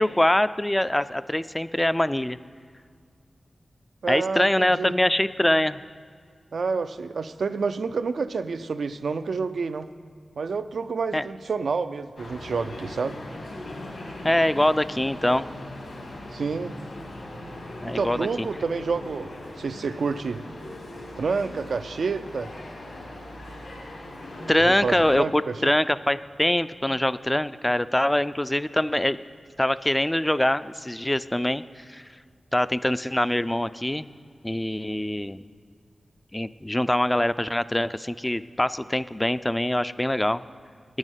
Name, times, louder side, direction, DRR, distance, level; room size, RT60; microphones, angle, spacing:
voice 1, 0.0-2.4 4.1-5.8 11.1-11.2 14.2-15.5 17.8-18.3 24.5-29.2 29.6-32.0 32.5-34.1 34.4-35.4 36.3-40.4, left 1 dB, 15° left, 14 dB, 0.3 m, -24 dB
voice 2, 4.0-4.9 6.5-9.9 10.4-13.2 16.3-16.8 17.9-19.3 19.6-20.4 21.2-22.5 24.6-25.7, right 4 dB, 80° right, 11 dB, 0.4 m, -28 dB
sound 1, 12.2-25.2, left 1 dB, 80° left, 3.0 m, -39 dB
9.9 x 6.4 x 8.9 m, 2.1 s
wide cardioid pair, 70°, 0 cm